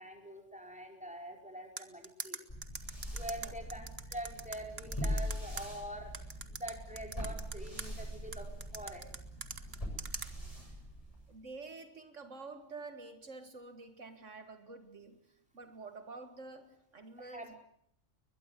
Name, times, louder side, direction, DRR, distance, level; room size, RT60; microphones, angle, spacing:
voice 1, 0.0-2.4 3.1-6.1 6.5-9.1 17.2-17.6, right 1 dB, 5° right, 5.2 m, -45 dB
sound 1, 1.8-5.6 6.1-7.9 8.3-10.3, right 5 dB, 55° right, 1.7 m, -41 dB
sound 2, 2.5-11.4, equal, 25° left, 8.0 m, -42 dB
voice 2, 11.3-17.5, right 3 dB, 75° right, 2.1 m, -49 dB
22.0 x 21.5 x 8.2 m
omnidirectional pair, 1.3 m